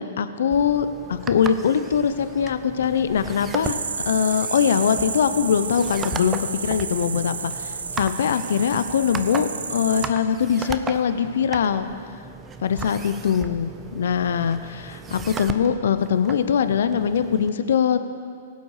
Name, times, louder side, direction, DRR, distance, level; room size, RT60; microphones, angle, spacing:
voice 1, 0.0-3.8 4.1-11.9 12.6-18.0, left 7 dB, 70° left, 11 dB, 0.6 m, -22 dB
sound 1, 0.5-17.5, right 5 dB, 20° right, 0.6 m, -37 dB
sound 2, 3.6-10.1, right 5 dB, 90° right, 0.6 m, -31 dB
17.5 x 8.0 x 4.9 m, 2.3 s
hypercardioid pair, 125°, 0 cm